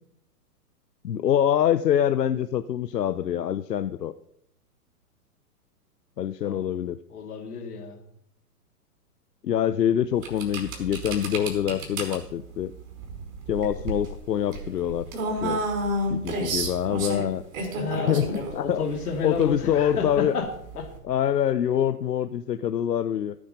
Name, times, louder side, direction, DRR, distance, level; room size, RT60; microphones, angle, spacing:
voice 1, 1.0-4.1 6.2-7.0 9.4-12.7 13.5-15.1 15.4-15.6 16.1-17.4 18.1-18.8 19.2-20.3 21.1-23.4, left 10 dB, 85° left, 13 dB, 0.8 m, -25 dB
voice 2, 6.4-6.8 7.1-8.0 17.8-20.9, left 4 dB, 70° left, 3 dB, 3.2 m, -31 dB
sound 1, 10.2-21.0, right 2 dB, 60° right, 5.0 m, -31 dB
14.0 x 9.8 x 5.3 m, 0.73 s
hypercardioid pair, 130°, 47 cm